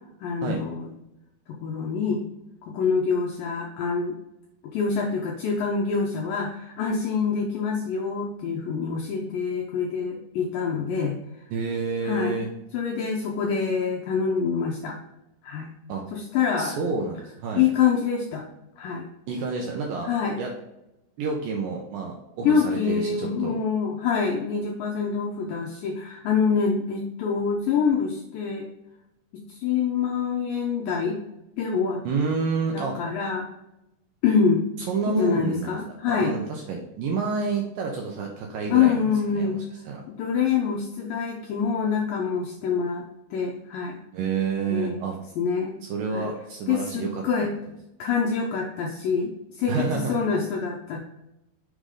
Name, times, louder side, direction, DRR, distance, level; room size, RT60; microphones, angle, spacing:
voice 1, 0.2-0.9 1.6-2.2 2.6-4.2 4.7-11.2 12.0-12.4 12.7-15.0 15.4-15.7 16.1-16.7 17.6-18.4 18.8-19.1 20.0-20.4 22.4-28.7 29.3-31.2 31.6-32.0 32.7-33.5 34.2-34.6 35.1-36.4 38.7-39.6 40.1-44.0 44.7-45.0 45.4-45.8 46.1-46.3 46.7-47.5 48.0-51.0, left 6 dB, 80° left, 0 dB, 2.0 m, -26 dB
voice 2, 11.5-12.5 15.9-16.1 16.6-17.6 19.3-20.1 20.4-20.5 21.2-23.6 32.0-33.0 34.9-35.8 36.1-40.0 44.1-45.2 45.9-47.2 49.7-50.1, right 4 dB, 75° right, 0 dB, 2.1 m, -29 dB
6.5 x 4.8 x 3.7 m, 0.89 s
omnidirectional pair, 4.9 m